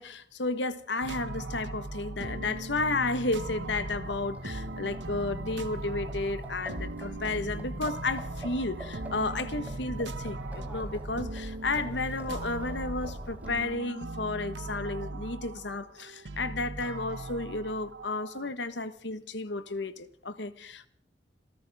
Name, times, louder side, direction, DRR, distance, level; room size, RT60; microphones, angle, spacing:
voice 1, 0.0-20.9, left 3 dB, 75° left, 1.3 m, -32 dB
sound 1, 1.0-18.5, right 2 dB, 85° right, 1.5 m, -39 dB
Livestock farm animals working animals, 2.3-13.9, equal, 10° right, 4.2 m, -45 dB
27.5 x 14.0 x 3.6 m
head